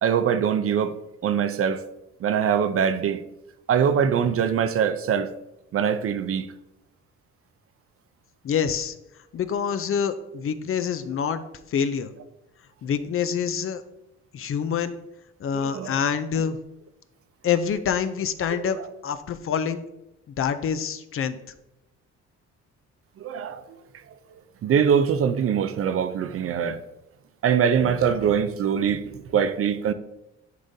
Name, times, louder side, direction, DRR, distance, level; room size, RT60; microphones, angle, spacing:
voice 1, 0.0-1.0 1.2-1.8 2.2-3.2 3.7-5.3 5.7-6.5 15.5-16.0 18.8-18.9 23.2-23.6 24.6-26.8 27.4-29.9, right 7 dB, 50° right, 0.5 m, -23 dB
voice 2, 8.4-8.9 9.3-11.4 11.7-12.1 12.8-13.8 14.3-15.0 15.4-16.6 17.4-18.8 19.0-19.8 20.3-21.4, left 7 dB, 45° left, 0.5 m, -26 dB
10.5 x 3.7 x 2.7 m
cardioid pair, 90°, 30 cm